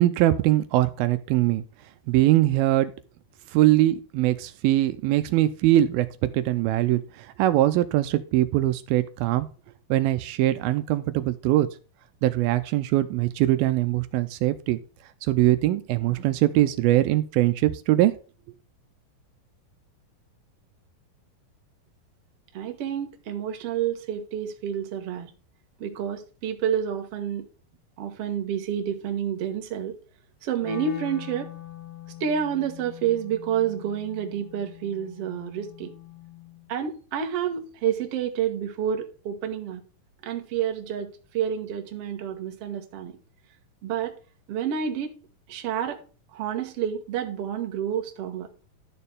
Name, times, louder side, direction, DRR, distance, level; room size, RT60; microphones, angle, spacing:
voice 1, 0.0-1.6 2.1-2.9 3.5-9.5 9.9-11.7 12.2-14.8 15.3-18.1, right 15 dB, 85° right, 2.4 m, -22 dB
voice 2, 22.5-25.3 25.8-27.5 28.0-30.0 30.4-31.5 32.2-35.9 36.7-39.8 40.2-43.2 43.8-44.2 44.5-45.2 45.5-46.0 46.3-48.5, right 8 dB, 55° right, 1.9 m, -29 dB
Wind instrument woodwind instrument, 30.6-36.7, left 12 dB, 90° left, 4.2 m, -43 dB
12.0 x 6.8 x 3.5 m
omnidirectional pair, 4.3 m